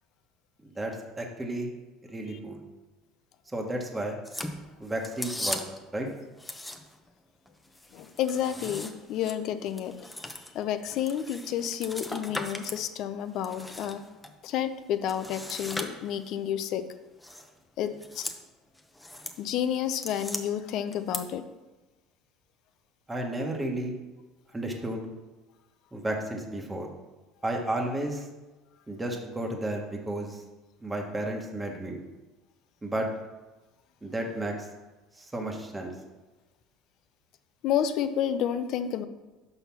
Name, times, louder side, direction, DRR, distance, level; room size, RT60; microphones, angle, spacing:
voice 1, 0.6-1.7 2.1-2.6 3.5-4.2 4.8-5.6 5.9-6.1 23.1-23.9 24.5-25.0 25.9-26.9 27.4-28.3 28.9-30.4 30.8-32.0 32.8-33.1 34.0-34.7 35.2-35.9, right 1 dB, 15° right, 1 dB, 1.3 m, -32 dB
sound 1, 4.2-5.9 6.4-7.1 7.5-12.8 13.2-14.3 15.1-16.4 17.2-17.5 17.9-18.4 18.8-19.4 19.7-20.4 20.9-21.2, left 1 dB, 5° left, 0.8 m, -38 dB
voice 2, 7.9-9.9 10.5-14.0 14.4-16.9 17.8-18.3 19.4-21.4 37.6-39.0, left 9 dB, 60° left, 11 dB, 0.6 m, -30 dB
5.6 x 5.5 x 6.0 m, 1.2 s
supercardioid pair, 100°, 0 cm